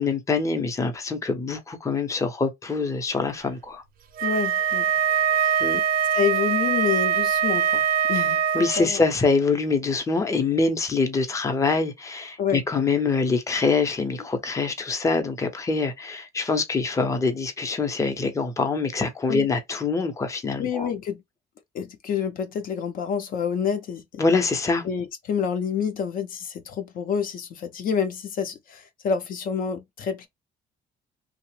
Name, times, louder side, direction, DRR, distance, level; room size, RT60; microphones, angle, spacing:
voice 1, 0.0-3.8 5.6-5.8 8.5-20.9 24.2-24.8, left 4 dB, 20° left, 0.6 m, -24 dB
voice 2, 4.2-4.9 5.4-5.7 6.1-7.8 8.1-8.4 8.8-9.0 12.4-12.6 19.3-19.5 20.6-21.2 21.7-24.0 24.8-30.3, left 7 dB, 55° left, 0.6 m, -28 dB
Wind instrument woodwind instrument, 4.2-8.9, right 8 dB, 60° right, 0.5 m, -23 dB
2.8 x 2.0 x 3.1 m
cardioid pair, 110°, 17 cm